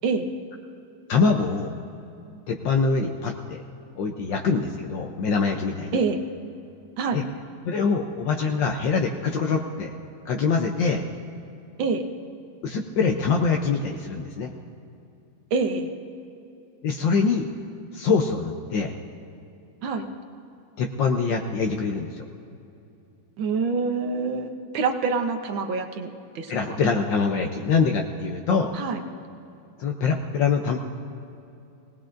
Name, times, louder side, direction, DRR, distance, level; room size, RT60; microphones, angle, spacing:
voice 1, 1.1-1.7 2.5-3.6 4.0-6.0 7.1-7.2 7.6-9.9 10.2-11.0 12.6-14.5 16.8-17.5 17.9-18.9 20.8-22.2 26.5-28.7 29.8-30.8, left 5 dB, 70° left, 3 dB, 1.3 m, -24 dB
voice 2, 15.5-15.9 19.8-20.1 23.4-26.5 28.7-29.0, right 4 dB, 70° right, 5 dB, 1.6 m, -26 dB
19.0 x 18.5 x 2.6 m, 2.7 s
omnidirectional pair, 2.3 m